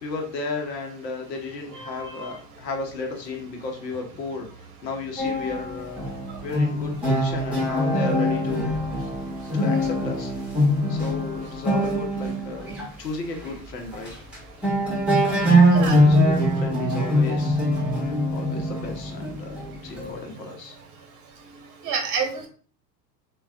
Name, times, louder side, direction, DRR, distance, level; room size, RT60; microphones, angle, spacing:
voice 1, 0.0-4.5 4.8-6.0 6.4-8.7 9.5-10.3 10.9-14.1 16.0-17.6 18.3-20.7, left 3 dB, 80° left, 2 dB, 0.8 m, -34 dB
voice 2, 1.8-2.3 15.7-16.0 21.8-22.5, right 5 dB, 40° right, 3 dB, 1.0 m, -28 dB
sound 1, 5.2-12.9 13.4-13.6 13.9-14.4 14.6-20.2, equal, ahead, 1.5 m, -23 dB
3.3 x 2.3 x 2.4 m, 0.40 s
hypercardioid pair, 85°, 49 cm